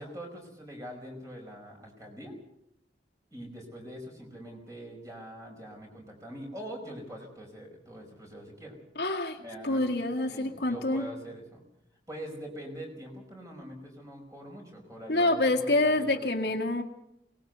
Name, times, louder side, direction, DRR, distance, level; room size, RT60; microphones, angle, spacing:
voice 1, 0.0-2.4 3.3-8.8 9.4-11.6 12.1-16.3, equal, 20° right, 2 dB, 5.2 m, -43 dB
voice 2, 9.0-9.4 9.6-11.0 15.1-16.8, left 2 dB, 65° left, 2 dB, 1.9 m, -26 dB
23.0 x 19.5 x 6.8 m, 0.82 s
head